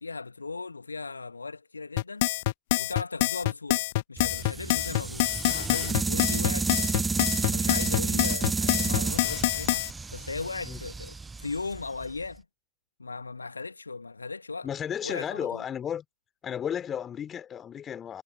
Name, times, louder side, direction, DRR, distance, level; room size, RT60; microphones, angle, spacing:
voice 1, 0.0-2.3 2.7-6.9 7.4-12.4 13.0-14.7 15.0-15.6, left 4 dB, 80° left, 1.4 m, -37 dB
sound 1, 2.0-9.9, left 19 dB, 50° left, 0.4 m, -26 dB
sound 2, 4.2-12.3, right 4 dB, 10° right, 0.3 m, -31 dB
voice 2, 14.6-16.0 16.4-18.2, left 9 dB, 25° left, 3.1 m, -33 dB
figure-of-eight pair, 90°, 0 cm